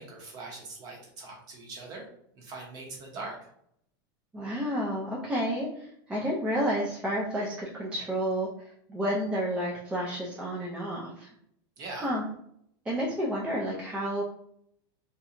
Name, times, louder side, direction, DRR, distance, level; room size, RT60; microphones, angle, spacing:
voice 1, 0.0-2.0 2.3-3.5 11.8-12.1, right 3 dB, 30° right, 0 dB, 0.7 m, -41 dB
voice 2, 4.3-11.3 12.0-12.2 12.9-14.2, equal, 10° right, -5 dB, 0.3 m, -30 dB
2.8 x 2.2 x 2.4 m, 0.71 s
supercardioid pair, 160°, 12 cm